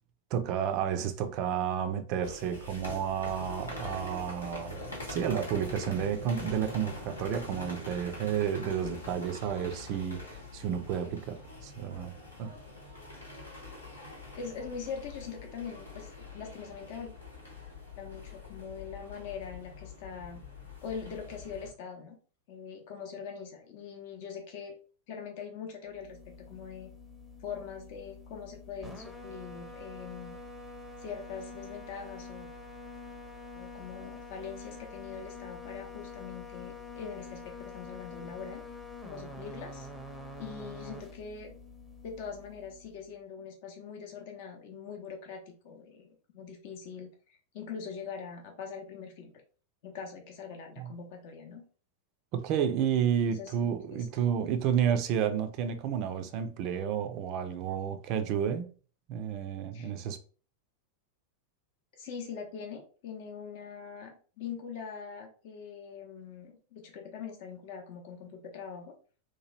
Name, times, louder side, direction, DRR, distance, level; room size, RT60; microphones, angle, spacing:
voice 1, 0.3-4.8 5.1-12.1 12.4-12.5 50.8-50.9 52.3-58.7 59.1-60.2, right 8 dB, 40° right, 0.4 m, -31 dB
sound 1, 2.2-21.7, left 2 dB, 75° left, 0.9 m, -44 dB
voice 2, 14.3-17.1 18.0-20.4 20.8-22.1 22.5-24.7 25.1-26.2 26.5-26.9 27.4-30.4 31.0-32.5 33.5-38.6 39.0-39.9 40.4-41.5 42.0-46.1 46.3-49.3 49.8-51.6 53.3-54.1 59.7-59.9 62.0-68.9, left 6 dB, 50° left, 0.6 m, -42 dB
sound 2, 25.9-43.1, left 3 dB, ahead, 0.6 m, -46 dB
2.9 x 2.3 x 3.0 m
figure-of-eight pair, 90°, 0 cm